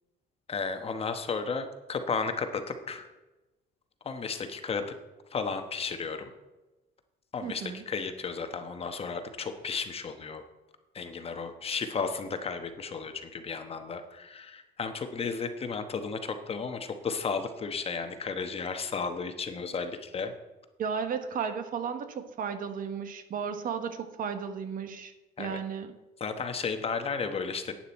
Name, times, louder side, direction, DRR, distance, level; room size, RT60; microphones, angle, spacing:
voice 1, 0.5-3.1 4.0-4.9 5.3-6.3 7.3-10.4 10.9-20.3 25.4-25.6 26.2-27.7, left 5 dB, 35° left, 7 dB, 1.1 m, -33 dB
voice 2, 7.4-7.8 20.8-25.9, right 6 dB, 55° right, 9 dB, 1.2 m, -34 dB
11.5 x 9.0 x 4.4 m, 1.1 s
cardioid pair, 110°, 17 cm